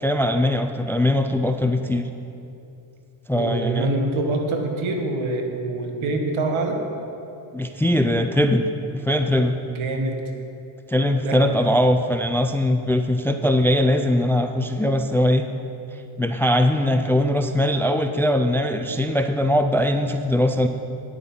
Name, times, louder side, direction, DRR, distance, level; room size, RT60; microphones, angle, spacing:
voice 1, 0.0-2.1 3.3-3.9 7.5-8.7 8.9-9.6 10.9-15.4 15.9-20.7, left 1 dB, 5° left, 7 dB, 0.3 m, -21 dB
voice 2, 3.3-6.8 9.7-10.2 11.2-11.5, right 2 dB, 80° right, 3 dB, 1.7 m, -25 dB
10.0 x 8.7 x 5.5 m, 2.7 s
cardioid pair, 105°, 47 cm